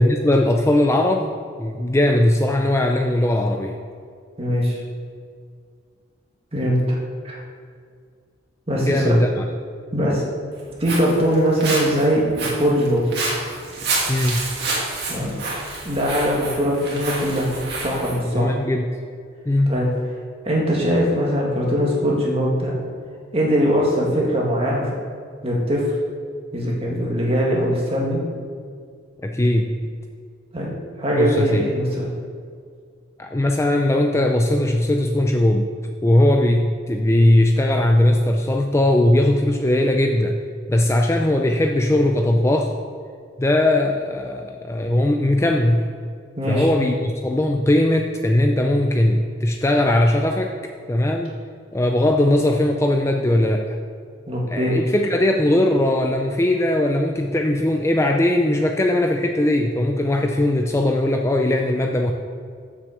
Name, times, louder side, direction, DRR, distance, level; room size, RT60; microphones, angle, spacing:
voice 1, 0.0-1.3 1.6-3.8 8.8-9.5 14.1-14.5 18.3-18.9 19.5-19.8 29.2-29.9 31.2-31.6 33.2-35.7 36.0-40.4 40.7-42.7 43.4-45.9 46.5-50.5 50.9-51.3 51.7-53.8 54.5-62.1, left 1 dB, 15° left, 3 dB, 0.4 m, -19 dB
voice 2, 4.4-4.8 6.5-7.0 7.2-7.4 8.7-9.1 9.9-10.2 10.8-13.3 15.1-15.3 15.8-17.5 17.8-18.5 19.7-19.9 20.4-22.7 23.3-24.9 25.4-25.9 26.5-28.2 30.5-32.1 46.4-46.7 54.3-54.8, equal, 30° right, -3 dB, 1.9 m, -21 dB
Walk footsteps, 10.5-18.2, right 2 dB, 55° right, 2.2 m, -29 dB
7.8 x 6.2 x 7.2 m, 2.1 s
head